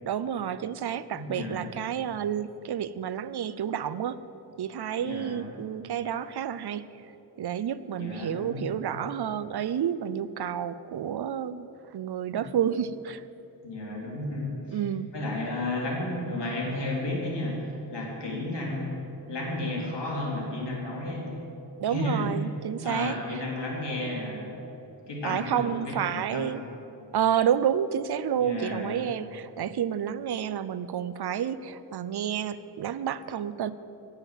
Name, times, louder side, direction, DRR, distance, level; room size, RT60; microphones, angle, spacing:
voice 1, 0.0-4.2 4.6-7.1 7.4-11.7 11.9-13.2 14.7-15.1 21.8-23.1 25.2-26.6 27.1-33.7, right 9 dB, 70° right, 14 dB, 0.6 m, -30 dB
voice 2, 1.1-1.7 5.0-5.5 8.0-8.8 12.3-12.4 13.6-14.8 15.1-19.0 19.3-21.3 21.9-22.3 22.8-24.5 25.1-26.6 28.3-29.0, left 2 dB, 85° left, -3 dB, 3.4 m, -33 dB
17.0 x 7.4 x 7.5 m, 3.0 s
wide cardioid pair, 135°, 41 cm